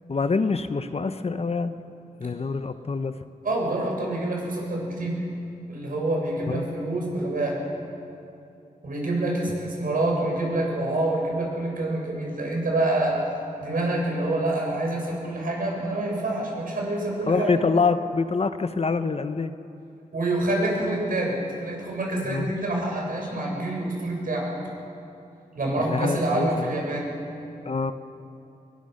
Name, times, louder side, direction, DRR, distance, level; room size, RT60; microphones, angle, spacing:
voice 1, 0.1-1.8 2.2-3.1 6.5-6.7 17.3-19.5 22.2-22.5 25.8-26.8 27.6-27.9, left 4 dB, 40° left, 11 dB, 0.9 m, -25 dB
voice 2, 3.4-5.2 5.7-7.5 8.8-13.1 13.6-17.5 20.1-21.3 21.6-24.5 25.5-27.1, right 2 dB, 65° right, -1 dB, 6.7 m, -26 dB
21.5 x 20.0 x 6.5 m, 2.7 s
cardioid pair, 65°, 15 cm